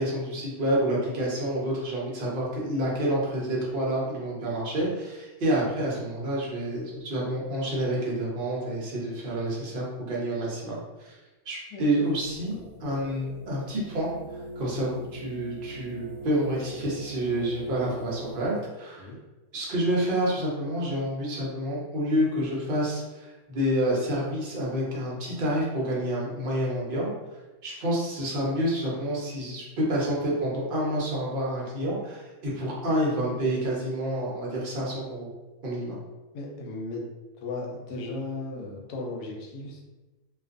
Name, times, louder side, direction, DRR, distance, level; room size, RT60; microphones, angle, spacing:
voice 1, 0.0-11.1 11.5-12.5 12.8-19.1 19.5-27.1 27.6-35.3 35.6-36.0, right 1 dB, 50° right, -5 dB, 0.6 m, -28 dB
sound 1, 12.3-18.5, right 1 dB, 5° left, 0.7 m, -42 dB
voice 2, 36.3-37.0 37.4-39.8, left 2 dB, 85° left, 0 dB, 1.1 m, -36 dB
2.4 x 2.4 x 2.4 m, 1.1 s
omnidirectional pair, 1.7 m